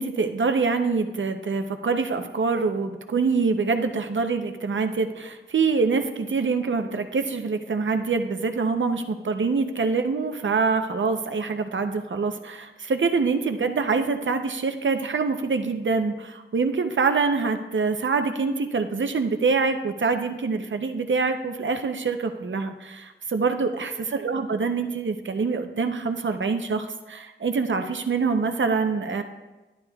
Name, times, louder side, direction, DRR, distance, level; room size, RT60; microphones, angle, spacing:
voice 1, 0.0-29.2, right 4 dB, 80° right, 7 dB, 0.6 m, -25 dB
11.5 x 10.5 x 2.3 m, 1.1 s
wide cardioid pair, 75°, 19 cm